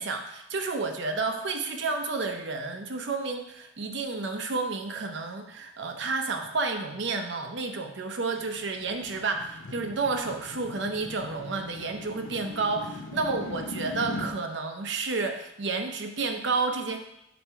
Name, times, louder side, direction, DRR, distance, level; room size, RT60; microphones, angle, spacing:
voice 1, 0.0-17.0, right 3 dB, 65° right, 5 dB, 0.7 m, -31 dB
sound 1, 8.4-14.4, left 2 dB, 75° left, 0.7 m, -40 dB
6.3 x 3.4 x 4.4 m, 0.83 s
head